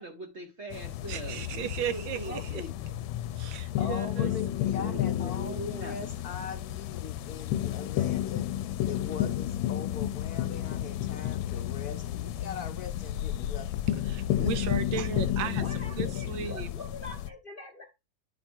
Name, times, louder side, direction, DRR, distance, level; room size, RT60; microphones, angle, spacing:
voice 1, 0.0-2.4 4.8-6.1, right 2 dB, 55° right, 0.8 m, -41 dB
sound 1, 0.7-17.3, left 12 dB, 80° left, 1.3 m, -32 dB
voice 2, 1.1-2.6 3.4-4.3 14.1-16.7, right 8 dB, 80° right, 1.4 m, -35 dB
voice 3, 2.1-2.8 15.6-17.9, left 4 dB, 45° left, 0.7 m, -43 dB
voice 4, 3.8-13.8 14.4-14.5, left 6 dB, 65° left, 0.9 m, -41 dB
9.2 x 3.3 x 4.4 m
omnidirectional pair, 2.1 m